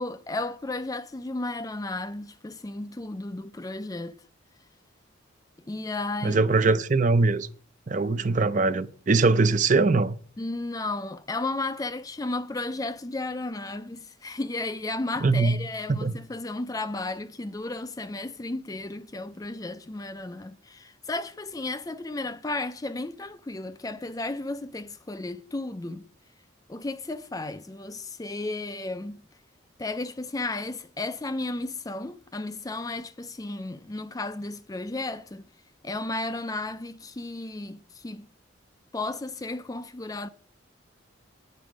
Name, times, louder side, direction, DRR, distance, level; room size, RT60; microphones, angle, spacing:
voice 1, 0.0-4.2 5.7-6.4 10.4-26.0 26.7-29.2 29.8-35.4 35.8-38.3 38.9-40.3, left 2 dB, 20° left, 0.4 m, -33 dB
voice 2, 6.2-7.5 7.9-10.2 15.2-15.6 15.9-16.1, right 3 dB, 40° right, 0.5 m, -22 dB
9.4 x 8.1 x 5.0 m
head